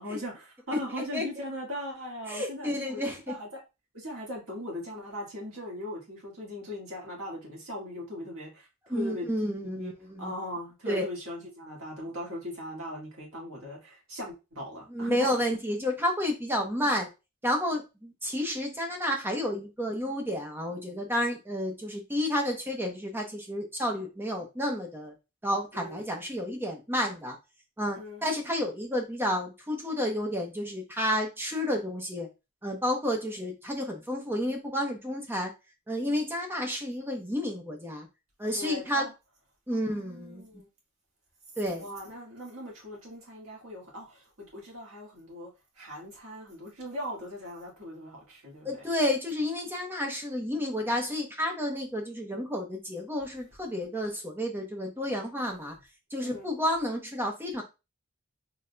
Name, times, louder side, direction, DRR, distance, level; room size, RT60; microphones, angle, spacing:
voice 1, 0.0-3.6 3.9-9.9 10.2-15.3 25.7-26.0 27.9-28.2 38.5-39.1 39.7-40.7 41.7-45.5 45.8-48.8 56.2-56.5, left 1 dB, 65° right, -3 dB, 1.7 m, -39 dB
voice 2, 0.7-1.4 2.3-3.3 8.9-10.3 10.9-11.1 14.9-17.1 17.4-25.1 25.4-27.4 27.8-32.3 32.6-35.5 35.9-38.1 38.4-39.1 39.7-40.4 41.6-41.9 48.6-55.7 56.1-57.6, equal, 10° right, 1 dB, 0.8 m, -31 dB
3.9 x 3.3 x 2.2 m, 0.26 s
head